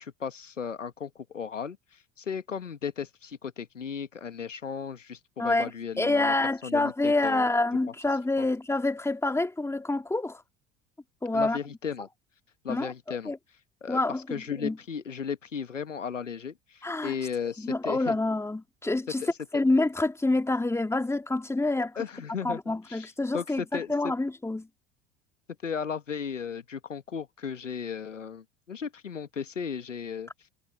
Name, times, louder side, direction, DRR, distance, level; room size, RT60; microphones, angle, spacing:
voice 1, 0.0-1.8 2.2-6.3 6.6-7.5 8.4-8.5 11.3-12.1 12.6-13.3 13.8-14.0 14.3-18.2 19.2-19.6 21.8-22.6 22.9-24.1 25.6-30.5, left 6 dB, 90° left, 1.5 m, -35 dB
voice 2, 5.4-5.7 6.0-10.4 11.2-11.6 12.7-13.4 13.9-14.8 16.8-17.2 17.6-19.2 19.5-21.9 22.4-24.7, left 2 dB, 5° left, 1.9 m, -27 dB
figure-of-eight pair, 70°, 37 cm